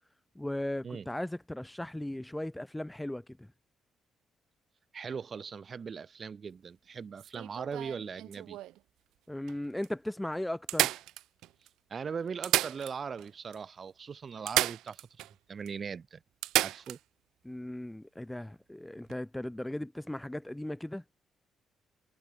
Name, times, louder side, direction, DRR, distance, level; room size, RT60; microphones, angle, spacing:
voice 1, 0.4-3.5 9.3-11.0 17.4-21.0, left 1 dB, 5° left, 0.6 m, -37 dB
voice 2, 4.9-8.6 11.9-16.2 16.6-17.0, right 6 dB, 45° right, 1.5 m, -40 dB
sound 1, 7.2-8.8 9.5-9.6 9.8-9.9 10.7-11.7 12.3-13.3 13.5-13.6 14.5-15.3 15.7-15.8 16.4-17.0 19.0-19.1, right 15 dB, 90° right, 0.4 m, -32 dB
cardioid pair, 90°, 0 cm